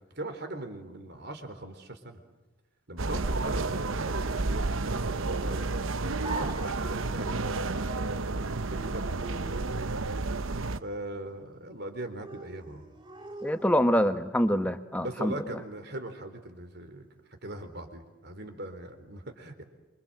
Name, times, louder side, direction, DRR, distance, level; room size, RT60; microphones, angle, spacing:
voice 1, 0.2-2.2 2.9-8.2 8.7-10.3 10.8-12.8 15.0-17.1 17.4-19.6, right 1 dB, 50° right, 7 dB, 4.0 m, -40 dB
sound 1, 3.0-10.8, right 3 dB, 75° right, 0.9 m, -31 dB
sound 2, 6.2-14.2, right 2 dB, 20° right, 2.3 m, -45 dB
voice 2, 13.4-15.3, equal, 5° left, 8 dB, 1.5 m, -25 dB
28.0 x 25.5 x 7.9 m, 1.2 s
head